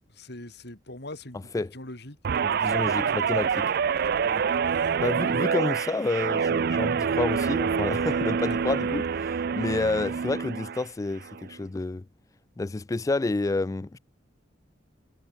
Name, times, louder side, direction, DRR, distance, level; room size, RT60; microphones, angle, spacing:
voice 1, 0.0-2.2 2.6-3.4 4.2-4.4 4.7-4.9, left 1 dB, 60° left, 5.1 m, -43 dB
Guitar, 2.2-10.8 11.2-11.5, right 6 dB, 55° right, 0.4 m, -26 dB
voice 2, 2.4-3.7 5.0-12.1 12.6-14.0, left 2 dB, 20° left, 0.3 m, -29 dB
head